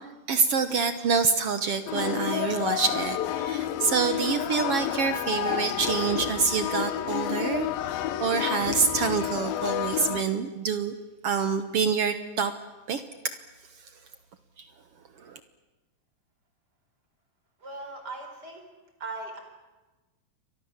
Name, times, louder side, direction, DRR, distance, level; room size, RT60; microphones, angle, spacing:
voice 1, 0.0-7.9 8.2-10.9 11.2-12.5 12.9-13.0 14.6-14.7 15.2-15.4, right 5 dB, 65° right, 11 dB, 1.5 m, -26 dB
sound 1, 1.9-10.2, left 11 dB, 85° left, 2.8 m, -30 dB
voice 2, 17.6-18.7 19.0-19.4, right 2 dB, 25° right, 4 dB, 4.9 m, -38 dB
29.5 x 23.5 x 7.4 m, 1.2 s
omnidirectional pair, 4.0 m